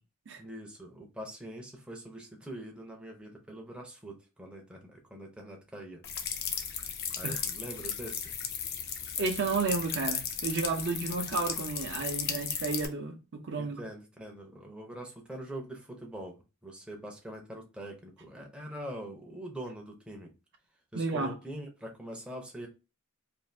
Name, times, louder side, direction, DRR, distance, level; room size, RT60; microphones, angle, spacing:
voice 1, 0.4-6.0 7.1-8.3 13.6-20.3 20.9-22.7, right 1 dB, 5° right, 0.5 m, -43 dB
sound 1, 6.0-12.9, left 7 dB, 50° left, 0.4 m, -35 dB
voice 2, 9.2-13.8 20.9-21.3, right 4 dB, 55° right, 0.5 m, -32 dB
2.5 x 2.4 x 3.1 m
head